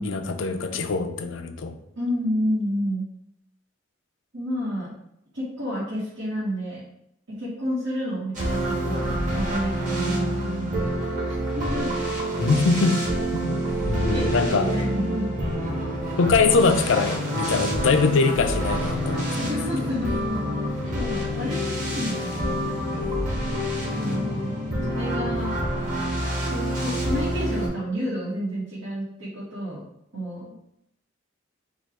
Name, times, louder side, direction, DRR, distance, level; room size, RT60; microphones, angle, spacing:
voice 1, 0.0-1.8 12.4-13.1 13.3-14.7 16.2-19.5 19.8-19.9 20.8-21.1 24.1-24.4, left 4 dB, 70° left, 7 dB, 0.5 m, -23 dB
voice 2, 1.9-3.0 4.3-4.9 5.3-6.8 7.4-10.7 11.3-11.9 14.1-15.2 19.4-20.4 20.8-23.1 23.9-24.6 24.8-25.5 26.5-29.8 30.1-30.5, equal, 80° right, -9 dB, 1.7 m, -30 dB
sound 1, 8.3-27.7, equal, 40° right, 1.3 m, -27 dB
4.5 x 2.4 x 4.5 m, 0.79 s
head